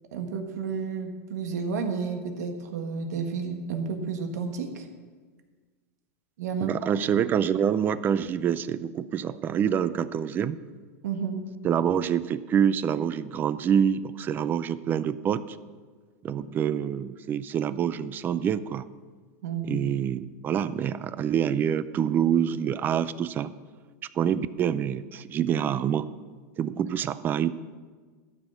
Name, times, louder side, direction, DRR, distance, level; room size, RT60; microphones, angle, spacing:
voice 1, 0.1-4.9 6.4-6.7 11.0-11.4 19.4-19.9, right 5 dB, 85° right, 5 dB, 1.6 m, -31 dB
voice 2, 6.6-10.6 11.6-15.6 16.2-18.8 19.6-23.5 24.1-26.1 26.6-27.5, right 8 dB, 25° right, 16 dB, 0.4 m, -26 dB
13.5 x 6.2 x 8.1 m, 1.5 s
supercardioid pair, 150°, 9 cm